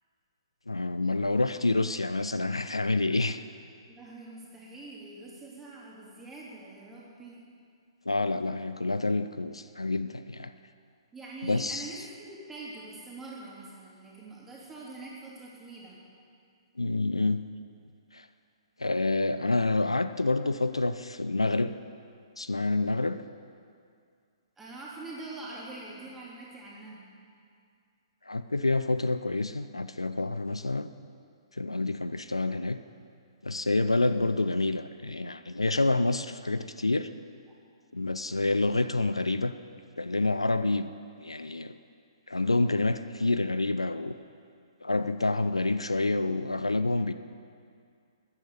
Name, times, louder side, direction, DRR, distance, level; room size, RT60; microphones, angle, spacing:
voice 1, 0.7-3.4 8.1-10.5 11.4-12.0 16.8-17.4 18.1-18.3 18.8-21.8 22.4-23.2 28.3-30.9 31.5-32.8 33.4-37.1 37.9-39.5 40.0-40.9 41.2-41.8 42.3-44.1 44.8-47.1, left 2 dB, 80° left, 12 dB, 0.5 m, -28 dB
voice 2, 3.9-7.4 11.1-16.0 24.6-27.1, right 2 dB, 10° right, -6 dB, 3.4 m, -44 dB
14.0 x 9.6 x 8.2 m, 2.3 s
figure-of-eight pair, 120°, 3 cm